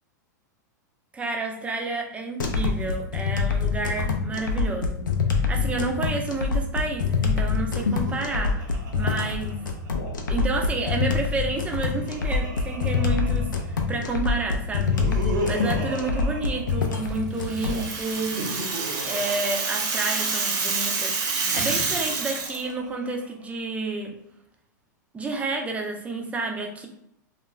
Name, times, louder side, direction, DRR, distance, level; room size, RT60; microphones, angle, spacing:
voice 1, 1.1-5.0 5.3-9.7 10.3-15.0 15.4-18.4 19.1-21.2 21.5-24.2 25.1-26.9, right 3 dB, 15° right, 2 dB, 0.5 m, -30 dB
sound 1, 2.4-17.8, left 5 dB, 90° left, 0.5 m, -25 dB
Laughter, 7.6-10.3 11.4-14.0 14.7-17.4 18.0-20.4 21.3-23.4, right 1 dB, 75° right, 0.7 m, -37 dB
Rattle (instrument), 17.4-22.6, right 4 dB, 45° right, 0.8 m, -28 dB
2.4 x 2.1 x 3.0 m, 0.77 s
hypercardioid pair, 110°, 10 cm